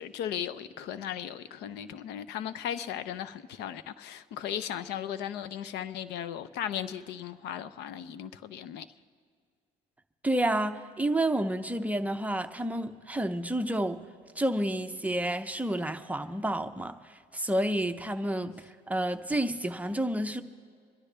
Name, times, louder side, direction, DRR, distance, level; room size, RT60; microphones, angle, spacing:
voice 1, 0.0-8.9, left 10 dB, 85° left, 0.6 m, -36 dB
voice 2, 10.2-14.1 14.4-20.4, right 1 dB, 10° right, 0.6 m, -30 dB
26.0 x 11.5 x 3.3 m
cardioid pair, 110°, 17 cm